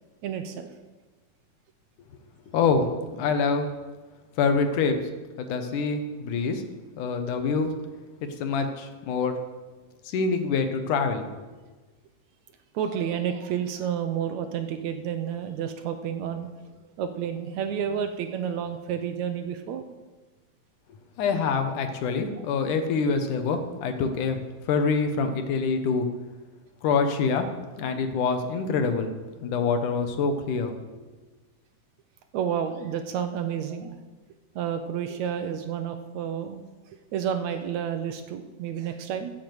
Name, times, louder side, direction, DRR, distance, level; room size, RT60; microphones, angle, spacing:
voice 1, 0.2-0.7 12.7-19.9 22.2-22.5 32.3-34.0 34.6-36.6 37.1-39.3, right 8 dB, 70° right, 7 dB, 1.9 m, -30 dB
voice 2, 2.5-2.9 3.2-3.7 4.4-5.0 5.4-6.6 7.0-7.7 8.4-9.3 10.1-11.3 21.2-24.4 24.7-26.1 26.8-27.5 27.8-29.1 29.4-30.7, left 5 dB, 75° left, 7 dB, 2.6 m, -25 dB
15.0 x 7.2 x 7.9 m, 1.3 s
omnidirectional pair, 3.7 m